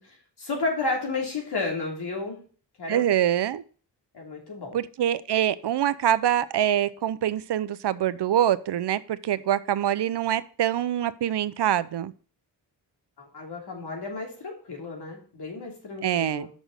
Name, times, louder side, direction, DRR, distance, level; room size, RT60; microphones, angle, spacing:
voice 1, 0.0-2.4 2.8-3.1 4.1-4.8 13.3-16.5, left 3 dB, 65° left, 0 dB, 3.2 m, -32 dB
voice 2, 2.9-3.6 4.7-12.1 16.0-16.5, right 11 dB, 70° right, 16 dB, 0.7 m, -25 dB
6.2 x 6.2 x 6.6 m, 0.41 s
cardioid pair, 75°, 41 cm